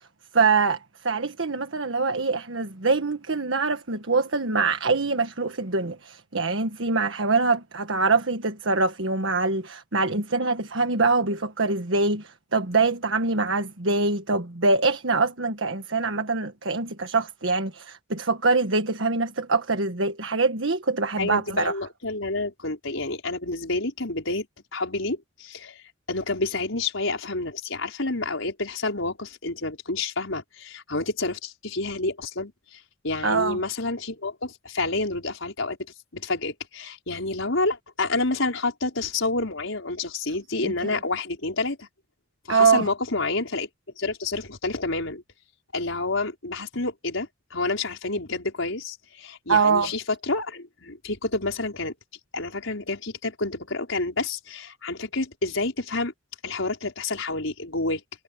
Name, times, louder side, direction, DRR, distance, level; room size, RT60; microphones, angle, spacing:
voice 1, 0.3-0.8 1.0-21.7 33.2-33.6 40.6-41.0 42.5-42.9 49.5-49.9, right 4 dB, 75° right, 1.5 m, -24 dB
voice 2, 21.2-24.5 24.7-25.8 26.1-32.8 33.0-35.8 36.1-41.9 42.5-43.7 44.0-45.2 45.7-51.9 52.3-56.1 56.4-58.0, left 3 dB, 80° left, 4.8 m, -29 dB
head